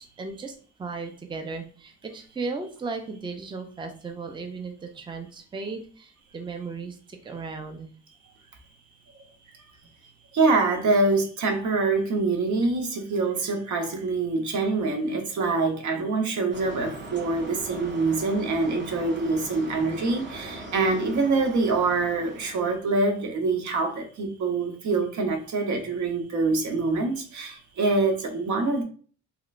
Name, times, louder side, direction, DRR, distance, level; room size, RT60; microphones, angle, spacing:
voice 1, 0.0-7.9, right 4 dB, 15° right, 5 dB, 0.5 m, -36 dB
voice 2, 10.3-28.8, right 3 dB, 70° right, 4 dB, 0.9 m, -25 dB
sound 1, 16.5-22.7, right 2 dB, 35° right, 1.0 m, -40 dB
3.1 x 2.9 x 2.4 m, 0.42 s
cardioid pair, 90°, 30 cm